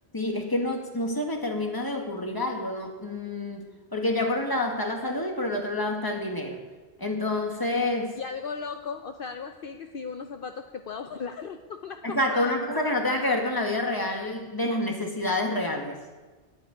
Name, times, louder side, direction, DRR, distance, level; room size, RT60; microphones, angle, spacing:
voice 1, 0.1-6.6 7.0-8.1 12.0-16.0, left 1 dB, 20° left, 2 dB, 1.9 m, -28 dB
voice 2, 8.1-12.8, left 5 dB, 60° left, 6 dB, 0.9 m, -37 dB
11.5 x 9.7 x 9.8 m, 1.3 s
omnidirectional pair, 1.1 m